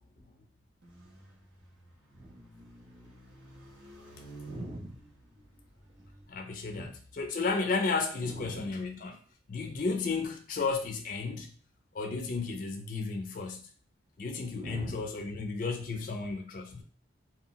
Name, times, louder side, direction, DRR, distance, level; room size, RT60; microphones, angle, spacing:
sound 1, 0.8-6.3, right 2 dB, 85° right, 0.9 m, -51 dB
voice 1, 4.5-5.0 6.7-6.9 8.2-8.8 14.6-15.0, right 1 dB, 30° right, 2 dB, 0.4 m, -42 dB
voice 2, 6.3-9.2 9.5-11.5 11.9-13.7 14.2-16.8, left 4 dB, 45° left, 4 dB, 0.3 m, -33 dB
2.2 x 2.0 x 3.8 m, 0.40 s
head